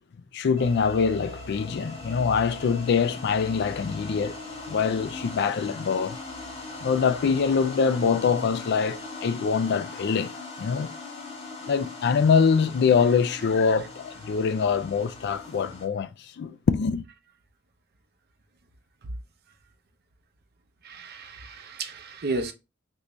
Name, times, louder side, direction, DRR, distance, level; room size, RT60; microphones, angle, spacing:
voice 1, 0.3-4.4 4.7-6.2 6.8-10.3 10.6-10.9 11.7-17.0, left 5 dB, 60° left, 0.3 m, -24 dB
sound 1, 0.6-15.9, left 2 dB, 30° left, 0.8 m, -40 dB
voice 2, 20.8-22.5, right 3 dB, 55° right, 0.6 m, -33 dB
3.0 x 2.6 x 3.3 m
head